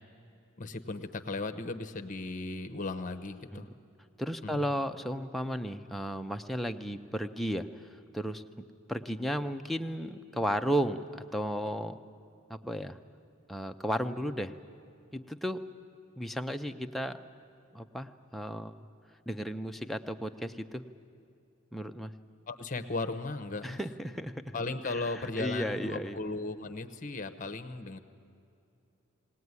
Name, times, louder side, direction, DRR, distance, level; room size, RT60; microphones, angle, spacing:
voice 1, 0.6-3.7 4.4-4.6 22.5-23.8 24.5-28.0, left 3 dB, 40° left, 10 dB, 0.9 m, -36 dB
voice 2, 4.2-8.4 8.9-12.0 12.5-13.0 13.5-14.5 15.1-15.6 16.2-17.2 17.7-18.9 19.3-20.8 21.7-22.1 23.6-24.6 24.8-26.2, equal, ahead, 5 dB, 0.6 m, -34 dB
20.5 x 18.5 x 9.6 m, 2.6 s
head